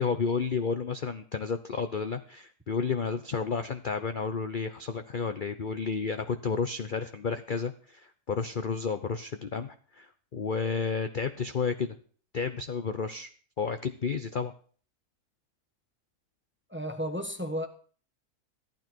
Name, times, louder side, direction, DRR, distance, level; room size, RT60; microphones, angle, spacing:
voice 1, 0.0-12.0 12.3-13.3 13.6-14.5, left 5 dB, 45° left, 9 dB, 0.7 m, -31 dB
voice 2, 16.7-17.7, equal, 10° right, 6 dB, 1.0 m, -33 dB
14.5 x 12.0 x 4.5 m, 0.44 s
omnidirectional pair, 1.7 m